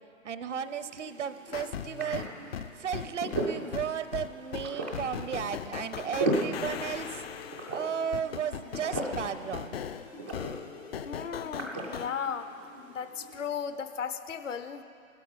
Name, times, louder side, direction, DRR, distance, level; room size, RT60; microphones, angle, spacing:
voice 1, 0.2-2.3 2.8-7.2 7.7-9.8, right 8 dB, 60° right, 12 dB, 0.8 m, -34 dB
sound 1, 0.6-13.5, right 1 dB, 10° right, 0.3 m, -38 dB
sound 2, 1.5-12.1, left 8 dB, 50° left, 0.6 m, -39 dB
voice 2, 11.1-12.5 12.9-14.8, left 7 dB, 65° left, 10 dB, 0.9 m, -35 dB
16.5 x 12.0 x 5.1 m, 2.5 s
figure-of-eight pair, 120°, 41 cm